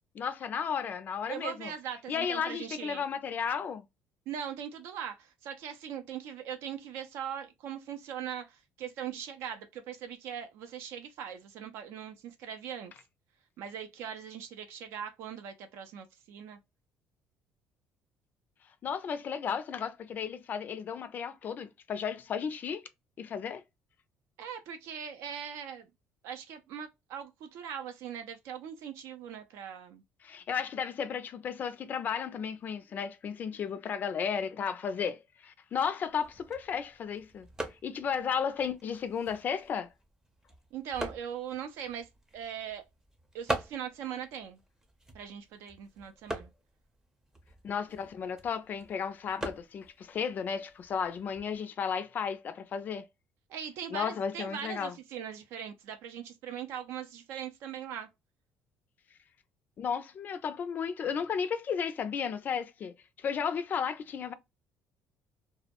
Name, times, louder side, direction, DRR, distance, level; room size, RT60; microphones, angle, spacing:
voice 1, 0.1-1.7 2.1-3.8 18.8-22.8 23.2-23.6 30.2-37.5 37.8-39.9 47.6-53.1 53.9-54.9 59.8-64.3, left 7 dB, 40° left, 0.3 m, -34 dB
voice 2, 1.3-3.0 4.3-12.9 13.6-16.6 24.4-25.9 26.2-30.0 40.7-42.8 43.3-44.6 45.1-46.5 53.5-58.1, right 8 dB, 80° right, 0.5 m, -40 dB
sound 1, 36.1-51.6, right 1 dB, 10° right, 0.5 m, -44 dB
2.2 x 2.0 x 2.8 m
cardioid pair, 120°, 4 cm